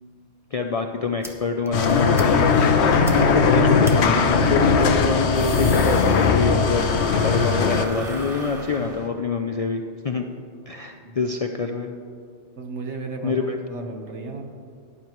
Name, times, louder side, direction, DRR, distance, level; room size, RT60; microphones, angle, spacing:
voice 1, 0.5-10.2 10.7-11.9 13.2-13.6, left 4 dB, 50° left, 4 dB, 0.4 m, -26 dB
sound 1, 1.2-1.3 1.7-1.8 2.2-2.3 2.6-2.7 3.1-3.2 3.8-4.0 5.1-6.7 7.0-9.2, equal, 5° right, 0.8 m, -39 dB
sound 2, 1.7-7.9, left 5 dB, 70° left, 1.0 m, -19 dB
sound 3, 1.8-9.1, left 1 dB, 50° right, 1.6 m, -30 dB
voice 2, 12.6-14.4, right 3 dB, 75° right, 3 dB, 1.5 m, -34 dB
17.0 x 9.8 x 3.0 m, 2.4 s
omnidirectional pair, 1.2 m